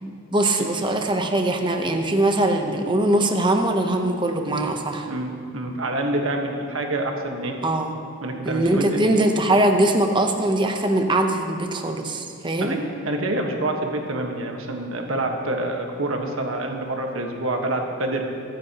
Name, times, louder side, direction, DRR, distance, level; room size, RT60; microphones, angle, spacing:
voice 1, 0.0-5.1 7.6-8.0 8.4-12.8, right 1 dB, 20° right, 4 dB, 0.9 m, -22 dB
voice 2, 5.1-7.5 8.2-9.0 12.6-18.3, right 1 dB, 75° right, 2 dB, 1.4 m, -27 dB
22.5 x 10.0 x 3.0 m, 2.5 s
head